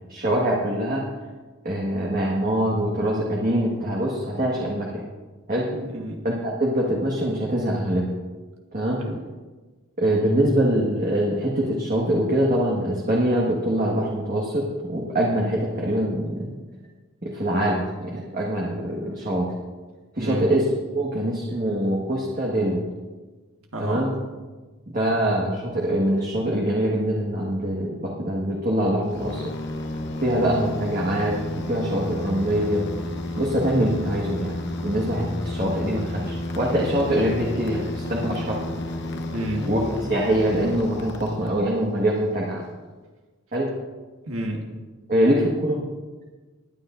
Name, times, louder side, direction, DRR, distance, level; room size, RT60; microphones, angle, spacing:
voice 1, 0.1-1.0 1.6-5.0 5.5-5.7 6.2-8.1 8.7-9.0 10.0-16.5 17.2-19.5 20.1-20.6 20.9-22.8 23.8-24.1 24.9-29.4 30.2-31.4 31.7-32.9 33.3-38.6 39.7-39.8 40.1-42.6 43.5-43.7 45.1-45.8, right 1 dB, 40° right, -3 dB, 1.5 m, -24 dB
voice 2, 5.7-6.2 9.0-9.2 20.2-20.5 23.7-24.0 39.3-39.7 44.3-44.7, right 1 dB, 75° right, 0 dB, 1.6 m, -30 dB
sound 1, 29.1-41.9, left 1 dB, 50° left, 0.9 m, -32 dB
21.0 x 9.9 x 2.6 m, 1.3 s
head